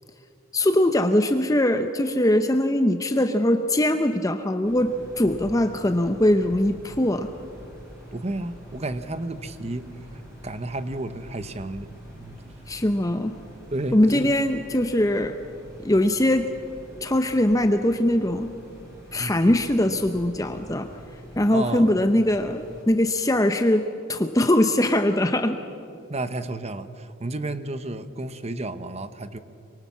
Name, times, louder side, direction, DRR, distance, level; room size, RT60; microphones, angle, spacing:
voice 1, 0.5-7.3 12.7-13.3 13.9-15.4 15.8-16.5 17.0-18.5 19.1-20.9 21.4-25.6, left 1 dB, 15° left, 7 dB, 0.7 m, -21 dB
sound 1, 4.6-22.8, equal, 15° right, 7.3 m, -45 dB
voice 2, 8.1-9.9 10.4-12.4 13.7-14.0 19.2-19.3 21.5-21.9 26.1-29.4, right 2 dB, 30° right, 11 dB, 0.9 m, -32 dB
24.0 x 24.0 x 7.3 m, 2.7 s
head